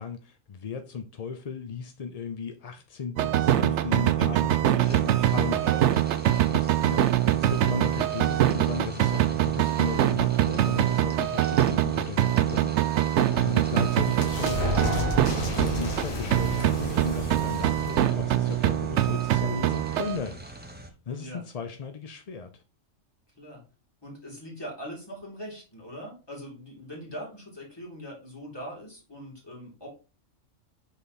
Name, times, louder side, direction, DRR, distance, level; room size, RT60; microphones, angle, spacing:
voice 1, 0.0-4.4 4.9-5.6 6.5-20.4 20.8-22.6, left 6 dB, 55° left, 0.4 m, -36 dB
sound 1, 3.2-16.1 16.3-20.2, right 12 dB, 70° right, 0.8 m, -24 dB
voice 2, 3.7-5.3 5.6-6.9 21.0-21.4 23.4-23.6 24.0-29.9, equal, 20° left, 2.6 m, -42 dB
sound 2, 4.8-20.9, right 1 dB, 10° right, 0.7 m, -43 dB
sound 3, 13.1-19.5, left 1 dB, 90° left, 1.8 m, -33 dB
5.6 x 4.1 x 4.1 m
omnidirectional pair, 1.4 m